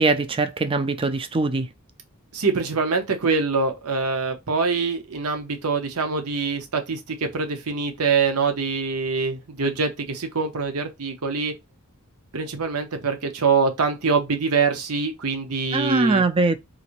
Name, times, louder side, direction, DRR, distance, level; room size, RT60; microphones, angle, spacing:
voice 1, 0.0-1.7 15.7-16.6, right 3 dB, 25° right, 0.4 m, -21 dB
voice 2, 2.3-11.5 12.3-16.2, right 4 dB, 80° right, 0.9 m, -24 dB
3.9 x 2.6 x 2.9 m
head